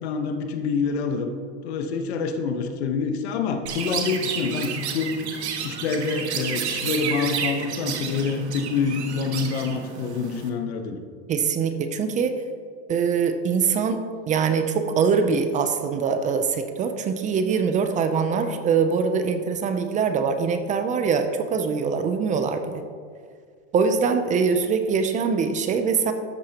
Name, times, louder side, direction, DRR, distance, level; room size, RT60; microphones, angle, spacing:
voice 1, 0.0-1.3 1.6-5.1 5.6-11.0, left 5 dB, 75° left, 6 dB, 1.2 m, -26 dB
Chirp tweet, 3.7-10.5, right 7 dB, 90° right, 1.4 m, -31 dB
voice 2, 11.3-12.3 12.9-22.8 23.7-26.1, right 5 dB, 25° right, 8 dB, 0.5 m, -23 dB
13.0 x 8.3 x 2.9 m, 2.1 s
supercardioid pair, 135°, 33 cm